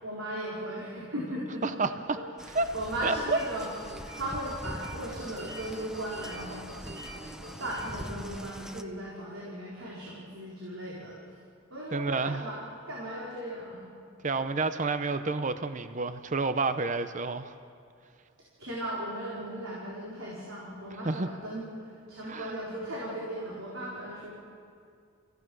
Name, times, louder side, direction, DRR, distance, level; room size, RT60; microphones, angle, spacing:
voice 1, 0.0-1.8 2.1-3.7 4.1-6.9 7.3-11.4 11.7-12.6 12.9-13.8 18.6-24.3, right 1 dB, 80° right, -6 dB, 4.2 m, -37 dB
sound 1, 2.4-8.8, equal, 5° right, 0.7 m, -43 dB
voice 2, 3.0-3.4 11.9-12.4 14.2-17.5 21.0-21.3 22.3-22.5, right 3 dB, 35° right, 10 dB, 0.7 m, -29 dB
sound 2, 3.0-8.7, right 1 dB, 60° right, 3.5 m, -46 dB
30.0 x 16.0 x 6.2 m, 2.3 s
head